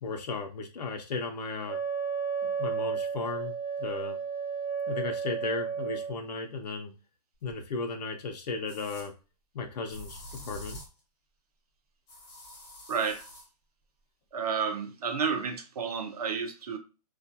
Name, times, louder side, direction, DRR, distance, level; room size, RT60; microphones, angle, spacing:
voice 1, 0.0-1.8 2.4-3.5 3.8-4.2 4.9-6.9 7.4-9.1 9.5-10.8, left 4 dB, 80° left, 0.6 m, -35 dB
Wind instrument woodwind instrument, 1.7-6.2, right 6 dB, 20° right, 0.3 m, -33 dB
sound 1, 8.7-9.1 9.9-11.0 12.1-13.5, equal, 30° left, 1.2 m, -46 dB
voice 2, 12.9-13.3 14.3-16.8, right 6 dB, 70° right, 0.7 m, -31 dB
2.4 x 2.2 x 2.7 m
hypercardioid pair, 170°, 21 cm